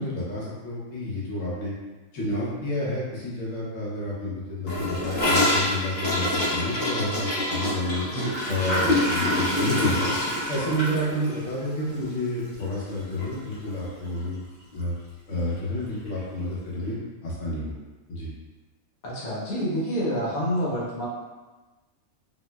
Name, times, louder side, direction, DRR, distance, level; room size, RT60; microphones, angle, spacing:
voice 1, 0.0-1.7 2.1-8.0 8.5-10.1 10.5-14.4 14.7-14.9 15.3-17.7 18.1-18.3, left 1 dB, 65° left, -7 dB, 1.1 m, -30 dB
Gurgling / Toilet flush, 4.7-12.9 13.2-13.3 13.6-14.0 14.3-14.4 14.7-14.8 15.8-15.9, left 1 dB, 50° left, 1.0 m, -26 dB
voice 2, 8.0-8.3 19.0-21.1, equal, 90° left, -7 dB, 1.3 m, -28 dB
4.1 x 2.0 x 2.2 m, 1.2 s
omnidirectional pair, 1.4 m